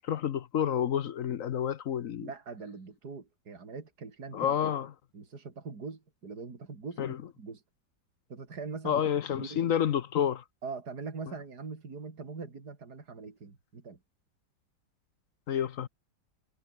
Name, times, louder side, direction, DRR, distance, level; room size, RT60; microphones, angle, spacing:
voice 1, 0.0-2.3 4.3-4.9 7.0-7.2 8.8-10.4 15.5-15.9, left 9 dB, 55° left, 0.9 m, -29 dB
voice 2, 2.2-4.7 5.1-7.6 8.3-9.0 9.4-9.7 10.6-14.0, right 4 dB, 55° right, 3.8 m, -42 dB
omnidirectional pair, 2.1 m